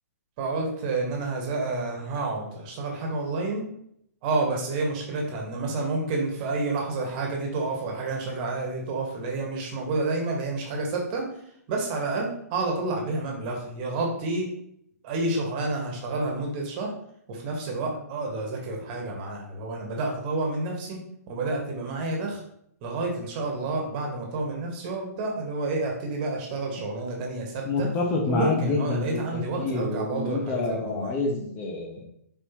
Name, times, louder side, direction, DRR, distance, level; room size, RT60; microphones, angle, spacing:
voice 1, 0.4-3.6 4.2-11.2 11.7-14.5 15.0-16.9 17.3-21.0 21.3-22.4 22.8-27.9 28.3-31.1, right 3 dB, 35° right, 0 dB, 1.6 m, -29 dB
voice 2, 27.7-32.0, left 3 dB, 25° left, 1 dB, 1.1 m, -28 dB
6.6 x 4.7 x 3.1 m, 0.71 s
figure-of-eight pair, 120°, 9 cm